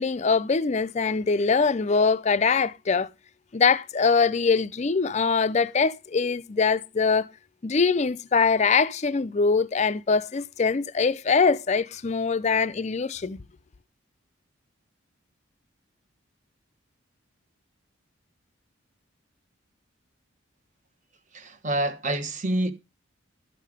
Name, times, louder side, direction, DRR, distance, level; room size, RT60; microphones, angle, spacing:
voice 1, 0.0-3.1 3.5-7.3 7.6-13.4, left 5 dB, 35° left, 0.4 m, -23 dB
voice 2, 21.3-22.7, right 1 dB, 40° right, 1.1 m, -27 dB
13.0 x 5.6 x 5.0 m
head